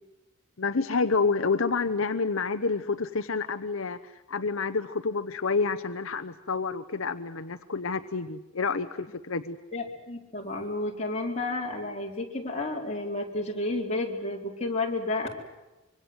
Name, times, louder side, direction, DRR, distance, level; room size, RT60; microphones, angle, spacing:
voice 1, 0.6-9.6, left 4 dB, 75° left, 9 dB, 1.0 m, -28 dB
voice 2, 9.7-15.3, left 2 dB, 30° left, 0 dB, 4.3 m, -31 dB
25.5 x 24.0 x 7.9 m, 1.1 s
head